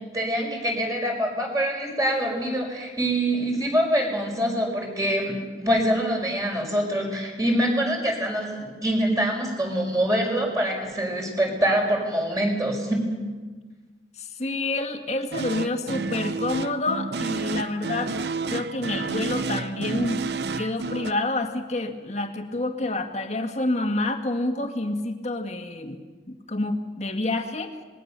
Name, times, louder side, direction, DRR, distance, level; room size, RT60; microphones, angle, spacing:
voice 1, 0.1-13.1, equal, 20° right, 0 dB, 5.4 m, -25 dB
voice 2, 14.2-18.2 18.5-20.2 20.6-26.0 26.5-27.8, left 2 dB, 40° left, 5 dB, 1.9 m, -28 dB
sound 1, 15.3-21.1, right 4 dB, 70° right, 0.8 m, -30 dB
26.0 x 21.0 x 6.8 m, 1.4 s
head